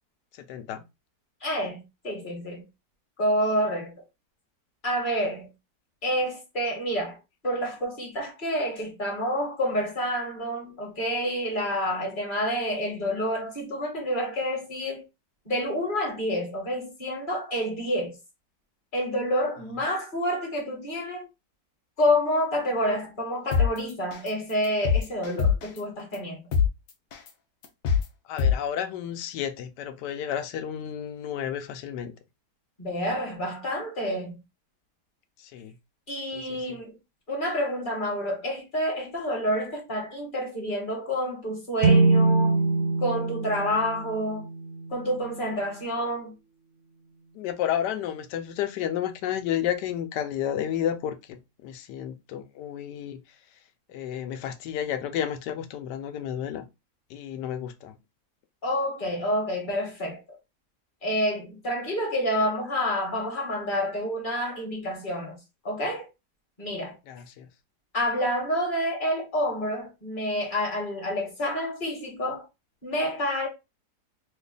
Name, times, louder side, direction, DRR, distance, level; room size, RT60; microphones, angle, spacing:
voice 1, 0.3-0.8 28.3-32.1 35.4-35.7 36.3-36.8 47.3-53.2 53.9-56.6 57.1-58.0 67.1-67.5, left 10 dB, 80° left, 1.2 m, -31 dB
voice 2, 1.4-2.6 3.2-3.9 4.8-5.5 6.0-7.2 7.4-15.0 15.4-18.1 18.9-21.3 22.0-26.4 32.8-34.3 36.1-36.9 37.3-42.6 43.0-44.5 44.9-46.3 58.6-60.4 61.0-65.4 65.6-66.1 66.6-67.0 67.9-72.4 72.8-73.5, equal, 30° left, 1.2 m, -28 dB
sound 1, 23.5-23.7 24.1-24.3 24.6-25.8 26.1-26.2 26.5-26.7 27.1-27.3 27.6-28.0 28.4-28.5, left 7 dB, 65° left, 0.9 m, -21 dB
sound 2, 41.8-45.4, right 3 dB, 70° right, 0.8 m, -24 dB
3.1 x 2.3 x 3.7 m
omnidirectional pair, 1.8 m